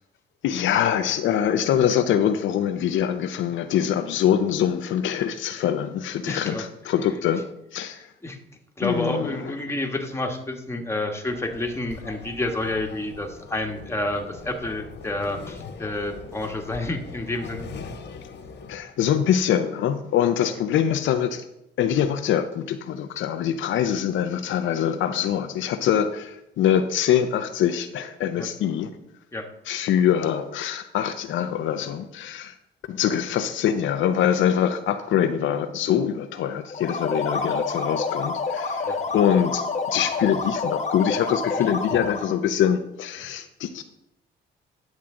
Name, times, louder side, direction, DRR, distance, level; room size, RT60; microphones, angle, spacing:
voice 1, 0.4-7.4 7.7-8.1 8.8-9.4 18.7-21.4 21.8-28.9 29.7-32.5 32.9-43.8, left 9 dB, 75° left, 8 dB, 0.6 m, -24 dB
voice 2, 6.3-6.7 7.9-8.4 8.8-17.7 20.5-20.6 28.3-28.5 29.3-29.5 38.8-39.0, left 2 dB, 15° left, 3 dB, 1.4 m, -29 dB
sound 1, 11.3-18.8, left 5 dB, 60° left, 1.0 m, -41 dB
sound 2, 36.7-42.4, left 4 dB, 35° left, 1.0 m, -28 dB
10.5 x 7.3 x 3.7 m, 0.83 s
cardioid pair, 90°, 20 cm